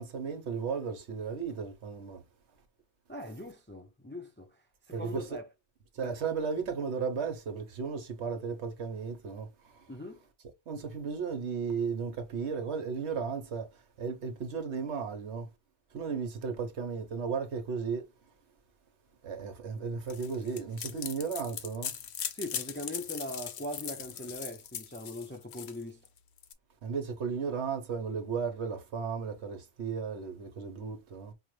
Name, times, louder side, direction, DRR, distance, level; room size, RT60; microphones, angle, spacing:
voice 1, 0.0-2.2 4.9-5.3 5.9-9.9 10.7-15.5 15.9-18.1 19.2-21.9 26.8-31.3, right 5 dB, 65° right, 1.1 m, -35 dB
voice 2, 3.1-5.5 6.0-6.2 9.9-10.2 22.3-26.1, left 1 dB, 15° left, 0.4 m, -41 dB
sound 1, 20.1-26.5, left 8 dB, 65° left, 0.9 m, -40 dB
5.2 x 2.1 x 3.1 m
omnidirectional pair, 1.2 m